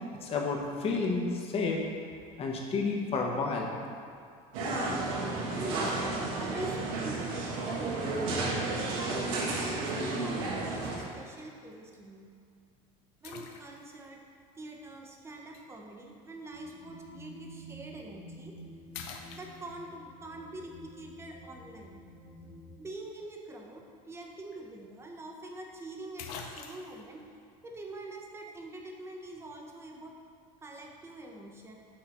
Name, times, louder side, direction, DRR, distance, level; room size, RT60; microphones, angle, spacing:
voice 1, 0.2-1.8 2.4-3.8, left 4 dB, 35° left, 0 dB, 1.0 m, -30 dB
sound 1, 4.5-11.0, right 2 dB, 85° right, 1.4 m, -32 dB
voice 2, 4.6-5.1 5.5-8.4 8.9-12.3 13.2-14.2 14.5-18.6 19.3-22.1 22.8-27.3 27.6-30.2 30.6-31.8, right 2 dB, 15° right, 1 dB, 0.8 m, -44 dB
sound 2, 10.7-11.1 11.7-11.8 13.2-14.1 15.5-15.7 17.8-18.0 18.4-18.6 18.9-20.0 24.1-24.2 24.5-24.6 25.7-25.8 26.2-27.0, left 6 dB, 70° left, 0.7 m, -45 dB
sound 3, 16.5-22.8, equal, 15° left, 1.5 m, -50 dB
6.6 x 3.9 x 5.9 m, 2.3 s
supercardioid pair, 135°, 17 cm